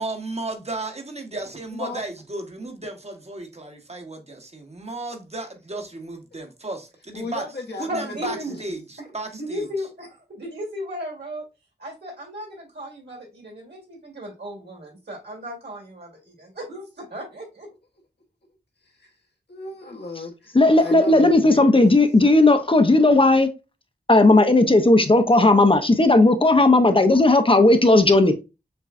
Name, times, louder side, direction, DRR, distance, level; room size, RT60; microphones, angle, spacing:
voice 1, 0.0-7.4 7.8-9.7, right 2 dB, 40° right, 1.1 m, -34 dB
voice 2, 7.1-8.5 19.5-21.8 22.2-22.3, left 2 dB, 75° left, 1.2 m, -35 dB
voice 3, 7.8-8.5 9.4-11.5 11.8-17.7, equal, 80° right, 2.3 m, -35 dB
voice 4, 20.5-23.5 24.1-28.3, left 2 dB, 30° left, 0.6 m, -15 dB
6.7 x 2.2 x 2.4 m
wide cardioid pair, 60°, 17 cm